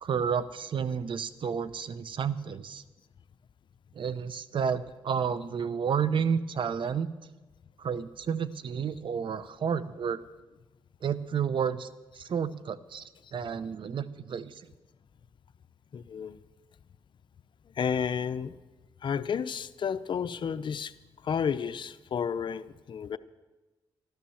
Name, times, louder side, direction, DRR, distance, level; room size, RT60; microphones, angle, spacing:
voice 1, 0.0-2.8 3.9-7.1 7.8-10.2 11.0-11.9 12.1-13.0 13.3-14.6, right 7 dB, 60° right, 15 dB, 0.8 m, -31 dB
voice 2, 15.9-16.4 17.8-18.6 19.0-20.9 21.2-23.2, left 7 dB, 60° left, 13 dB, 0.6 m, -31 dB
13.0 x 12.0 x 7.1 m, 1.2 s
cardioid pair, 75°, 9 cm